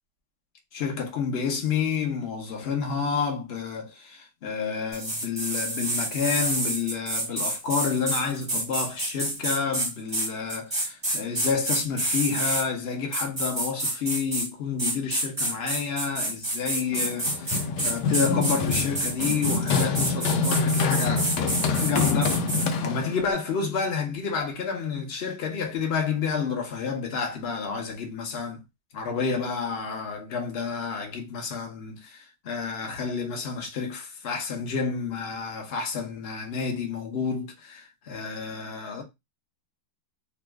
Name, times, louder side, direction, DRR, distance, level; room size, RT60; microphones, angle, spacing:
voice 1, 0.7-21.3 21.8-28.6 28.9-39.0, left 5 dB, 50° left, 0.8 m, -30 dB
sound 1, 4.9-12.6 13.1-14.5 14.8-22.7, right 1 dB, 20° right, 0.8 m, -28 dB
Run, 16.9-23.3, left 4 dB, 75° left, 1.1 m, -26 dB
3.0 x 2.4 x 3.3 m
omnidirectional pair, 2.1 m